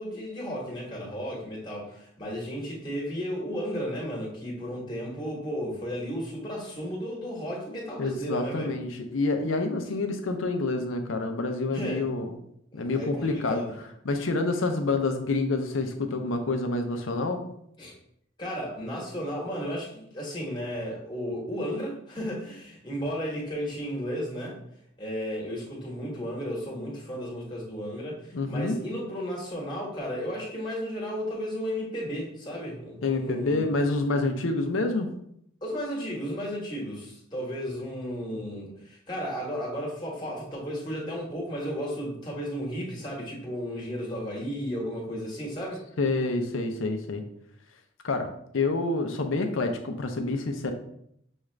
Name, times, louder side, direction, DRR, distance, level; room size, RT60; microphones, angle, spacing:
voice 1, 0.0-8.7 11.7-12.1 12.7-13.8 17.8-17.9 18.4-24.6 25.0-33.7 35.6-45.8, equal, 20° left, -5 dB, 1.3 m, -34 dB
voice 2, 8.0-12.4 12.7-13.6 14.0-17.4 28.3-28.8 33.0-35.1 46.0-47.2 48.0-48.3 48.5-50.7, left 3 dB, 80° left, 5 dB, 0.6 m, -27 dB
6.3 x 2.4 x 3.2 m, 0.72 s
head